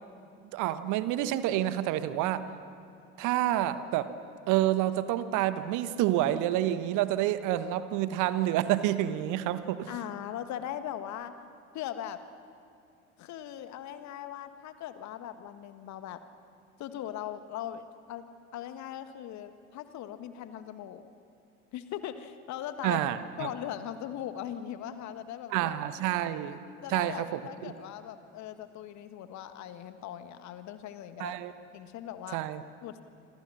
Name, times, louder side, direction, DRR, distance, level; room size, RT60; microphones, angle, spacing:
voice 1, 0.5-2.4 3.2-4.1 4.5-9.9 22.8-23.5 25.5-26.6 26.9-27.7 31.2-31.5 32.3-32.6, right 13 dB, 50° right, 12 dB, 1.3 m, -28 dB
voice 2, 9.9-11.3 11.7-12.2 13.2-16.2 16.8-18.2 18.5-21.1 21.7-23.0 23.4-25.7 26.1-26.2 26.8-31.4 31.7-32.4 32.8-33.0, left 11 dB, 45° left, 10 dB, 1.6 m, -39 dB
27.0 x 26.5 x 6.3 m, 2.5 s
figure-of-eight pair, 65°, 39 cm